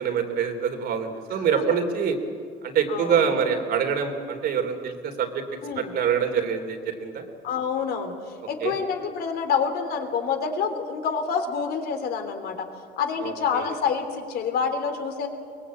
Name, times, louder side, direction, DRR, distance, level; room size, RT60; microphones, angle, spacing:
voice 1, 0.0-2.2 2.6-5.4 5.7-7.2 8.6-8.7 13.2-13.6, right 7 dB, 70° right, 5 dB, 3.2 m, -25 dB
voice 2, 2.9-3.2 5.6-5.9 7.4-8.1 8.5-12.6 13.0-15.3, left 6 dB, 70° left, 6 dB, 3.2 m, -27 dB
23.0 x 20.5 x 8.6 m, 2.2 s
cardioid pair, 110°, 17 cm